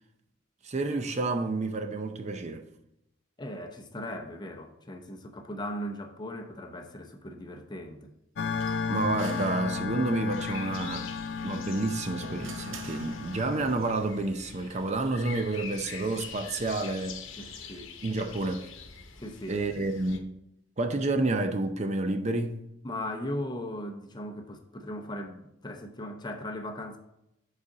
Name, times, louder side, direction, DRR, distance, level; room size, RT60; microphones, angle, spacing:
voice 1, 0.6-2.7 8.9-11.1 11.4-17.3 18.0-18.7 19.5-20.4 20.8-22.6, right 2 dB, 35° right, 0.5 m, -29 dB
voice 2, 3.4-8.1 17.4-17.9 19.2-19.6 22.8-27.0, left 1 dB, 20° left, 0.7 m, -38 dB
sound 1, 8.4-13.8, left 5 dB, 60° left, 0.4 m, -34 dB
sound 2, 8.6-10.3 11.7-13.7, right 5 dB, 80° right, 0.8 m, -46 dB
sound 3, 10.3-20.2, left 6 dB, 90° left, 0.9 m, -45 dB
7.8 x 4.1 x 4.9 m
head